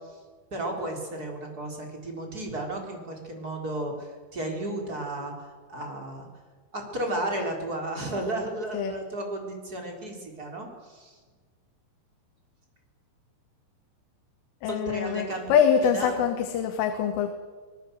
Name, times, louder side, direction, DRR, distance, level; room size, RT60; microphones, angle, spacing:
voice 1, 0.5-5.3 5.7-6.3 6.7-11.2 14.6-15.5 15.8-16.2, right 1 dB, 20° right, 2 dB, 3.9 m, -33 dB
voice 2, 14.6-17.3, left 7 dB, 80° left, 6 dB, 3.8 m, -24 dB
25.5 x 19.5 x 7.9 m, 1.4 s
omnidirectional pair, 5.8 m